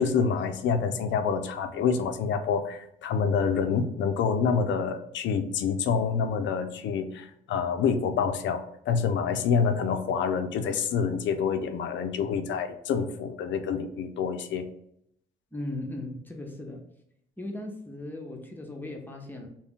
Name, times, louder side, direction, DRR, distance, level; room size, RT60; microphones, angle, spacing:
voice 1, 0.0-14.7, left 6 dB, 70° left, 8 dB, 0.4 m, -27 dB
voice 2, 15.5-16.8 17.4-19.5, left 1 dB, 10° left, 2 dB, 0.6 m, -37 dB
2.4 x 2.1 x 3.5 m, 0.74 s
cardioid pair, 90°, 20 cm